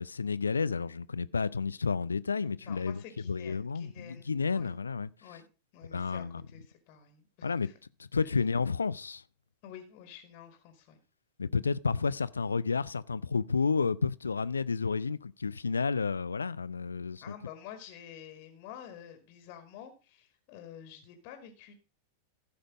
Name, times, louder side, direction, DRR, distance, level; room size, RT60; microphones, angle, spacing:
voice 1, 0.0-5.1 5.9-6.4 7.4-7.7 8.0-9.2 11.4-17.3, left 5 dB, 75° left, 0.4 m, -31 dB
voice 2, 2.4-4.7 5.2-5.5 5.7-7.8 8.2-8.3 9.6-11.0 17.2-21.8, left 9 dB, 45° left, 1.9 m, -49 dB
15.0 x 5.2 x 5.0 m
figure-of-eight pair, 90°, 0 cm